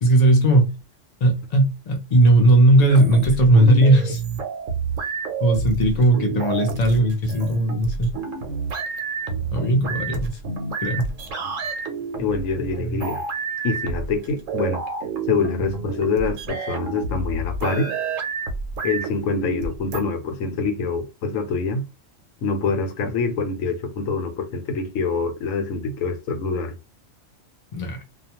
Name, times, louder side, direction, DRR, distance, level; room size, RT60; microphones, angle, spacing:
voice 1, 0.0-0.7 1.2-4.2 5.4-8.1 9.5-10.3 10.8-11.1 27.7-28.0, right 1 dB, 40° left, 0.6 m, -17 dB
sound 1, 2.9-20.0, right 4 dB, 75° right, 1.0 m, -29 dB
voice 2, 12.2-13.2 13.6-14.8 15.3-17.9 18.8-21.8 22.4-26.7, left 4 dB, 85° left, 1.1 m, -25 dB
2.4 x 2.2 x 2.8 m
omnidirectional pair, 1.3 m